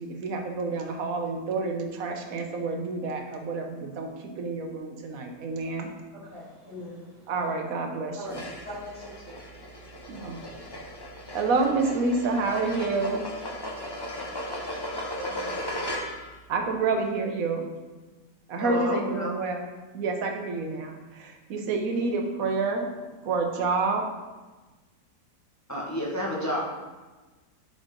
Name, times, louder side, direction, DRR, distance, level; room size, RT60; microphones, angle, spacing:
voice 1, 0.0-5.9 7.3-8.4 10.1-10.4 11.3-13.2 16.5-17.7 18.5-19.6 19.9-22.9 23.2-24.1, right 3 dB, 60° right, 3 dB, 1.2 m, -28 dB
voice 2, 6.1-7.3 8.1-10.2, left 1 dB, 55° left, -10 dB, 3.2 m, -43 dB
sound 1, 8.3-16.4, left 1 dB, 40° left, 0.3 m, -36 dB
voice 3, 14.9-15.8 18.6-19.3 25.7-26.6, equal, 10° left, -6 dB, 1.3 m, -31 dB
9.8 x 3.9 x 3.8 m, 1.2 s
omnidirectional pair, 1.8 m